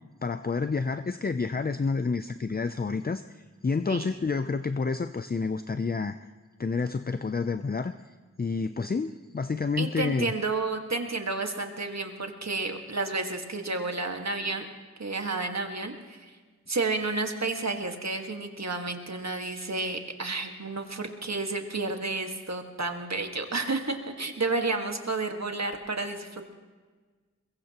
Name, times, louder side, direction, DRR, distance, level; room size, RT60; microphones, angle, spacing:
voice 1, 0.2-3.2 3.6-6.2 6.6-7.9 8.4-10.3, left 4 dB, 30° left, 10 dB, 0.5 m, -29 dB
voice 2, 9.8-14.7 15.0-16.3 16.7-26.5, right 3 dB, 60° right, 4 dB, 1.7 m, -31 dB
22.0 x 22.0 x 3.0 m, 1.4 s
wide cardioid pair, 50°, 30 cm